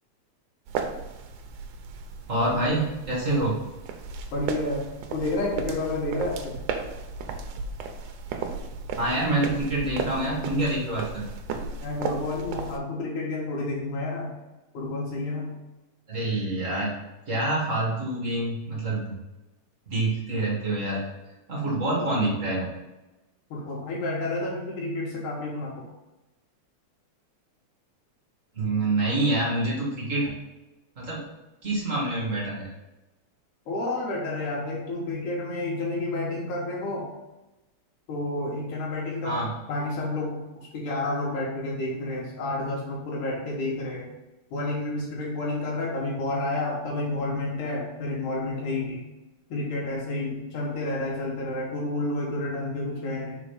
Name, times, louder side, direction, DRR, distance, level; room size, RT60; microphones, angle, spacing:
sound 1, 0.7-12.8, right 5 dB, 85° right, 2.1 m, -35 dB
voice 1, 2.3-3.6 9.0-11.3 16.1-16.9 17.3-19.2 19.9-21.0 21.5-22.7 28.5-30.3 30.9-31.3 31.6-32.7 39.2-39.5, right 2 dB, 40° right, -4 dB, 1.2 m, -26 dB
voice 2, 4.3-6.6 11.8-14.3 14.7-15.6 23.5-25.9 33.7-37.1 38.1-39.4 39.7-44.1 44.5-49.1 49.5-53.4, left 2 dB, 80° left, -4 dB, 2.7 m, -30 dB
4.9 x 4.5 x 4.9 m, 1.0 s
omnidirectional pair, 3.5 m